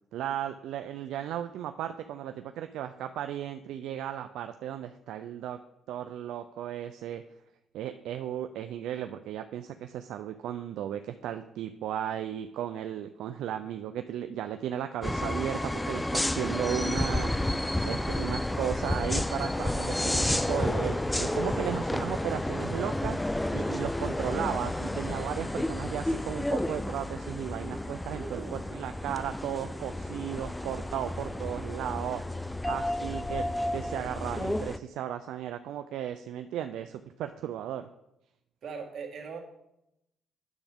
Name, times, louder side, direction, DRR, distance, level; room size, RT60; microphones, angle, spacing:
voice 1, 0.1-5.6 5.9-7.2 7.7-17.3 17.8-23.2 23.5-32.2 32.7-37.9, right 10 dB, 85° right, 8 dB, 0.3 m, -35 dB
sound 1, 15.0-34.8, left 1 dB, 10° left, 0.4 m, -31 dB
voice 2, 28.1-28.6 38.6-39.4, right 5 dB, 65° right, 1 dB, 1.7 m, -40 dB
9.9 x 7.1 x 3.5 m, 0.85 s
cardioid pair, 90°, 0 cm